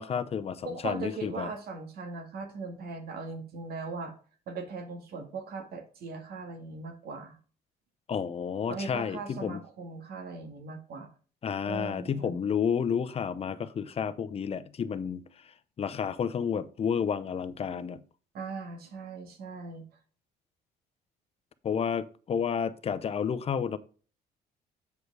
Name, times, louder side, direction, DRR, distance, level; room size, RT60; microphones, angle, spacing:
voice 1, 0.0-1.5 8.1-9.6 11.4-15.2 15.8-18.0 21.6-23.8, left 7 dB, 35° left, 0.7 m, -31 dB
voice 2, 0.6-4.1 4.5-7.4 8.7-11.1 11.7-12.4 18.3-19.8, right 4 dB, 65° right, 2.1 m, -39 dB
7.9 x 5.1 x 4.7 m
cardioid pair, 110°, 17 cm